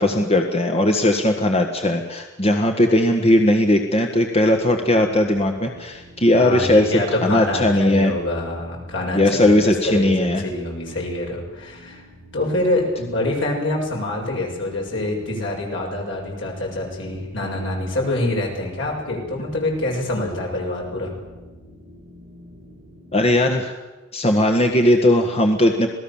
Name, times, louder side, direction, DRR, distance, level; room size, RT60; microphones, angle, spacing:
voice 1, 0.0-6.9 7.2-8.1 9.1-10.4 23.1-23.7 24.1-25.9, left 1 dB, 30° left, 4 dB, 1.6 m, -18 dB
sound 1, 4.5-23.4, left 1 dB, 20° right, 6.3 m, -46 dB
voice 2, 6.4-12.0 12.3-21.1, left 1 dB, 65° left, -1 dB, 7.0 m, -26 dB
27.0 x 18.5 x 7.3 m, 1.2 s
head